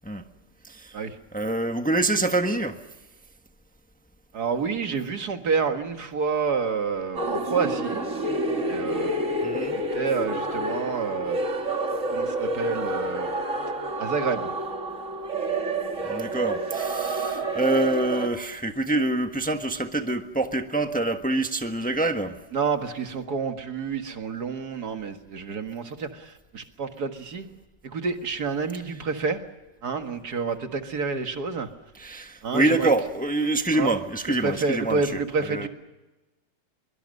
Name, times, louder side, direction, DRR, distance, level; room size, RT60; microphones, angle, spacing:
voice 1, 0.6-1.0 1.3-2.8 9.4-9.8 16.0-22.3 32.0-35.0 35.5-35.7, right 2 dB, 5° left, 1.1 m, -26 dB
voice 2, 4.3-8.0 8.7-11.4 12.1-13.3 14.0-14.5 22.5-27.5 27.8-29.4 29.8-31.7 32.4-32.9 33.7-33.9 34.4-35.7, right 5 dB, 60° right, 2.2 m, -29 dB
sound 1, 7.2-18.3, right 2 dB, 45° right, 2.6 m, -29 dB
23.5 x 23.5 x 6.6 m
omnidirectional pair, 1.9 m